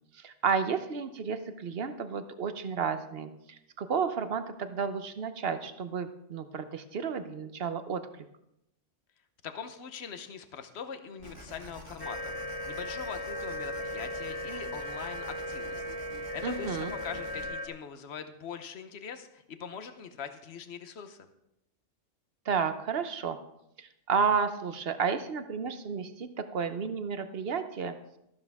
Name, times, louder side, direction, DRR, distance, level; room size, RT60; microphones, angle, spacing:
voice 1, 0.1-8.2 16.4-16.9 22.5-23.4 23.8-27.9, right 6 dB, 55° right, 9 dB, 1.0 m, -32 dB
voice 2, 9.4-12.4 12.7-21.3, left 6 dB, 60° left, 9 dB, 1.2 m, -42 dB
sound 1, 11.2-17.5, equal, 25° right, 1.8 m, -48 dB
sound 2, 12.0-17.7, left 1 dB, 20° left, 1.1 m, -37 dB
13.5 x 12.0 x 3.6 m, 0.82 s
omnidirectional pair, 1.3 m